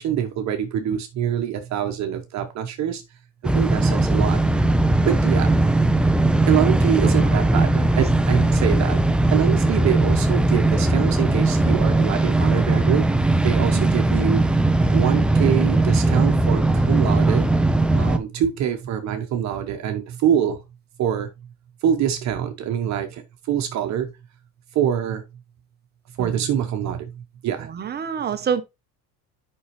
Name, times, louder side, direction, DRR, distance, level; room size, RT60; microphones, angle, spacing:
voice 1, 0.0-3.0 3.5-4.4 5.1-5.6 6.5-9.0 9.3-13.0 13.4-14.4 14.9-17.5 18.0-20.6 21.0-21.3 21.8-23.2 23.5-24.1 24.7-25.2 26.2-27.0 27.4-27.7, right 9 dB, 45° right, 1.1 m, -24 dB
sound 1, 3.4-18.2, right 2 dB, 5° right, 0.4 m, -19 dB
voice 2, 7.0-7.5 13.7-13.9 26.2-26.5 27.6-28.6, right 7 dB, 25° right, 0.9 m, -28 dB
8.6 x 5.6 x 3.2 m
cardioid pair, 140°, 37 cm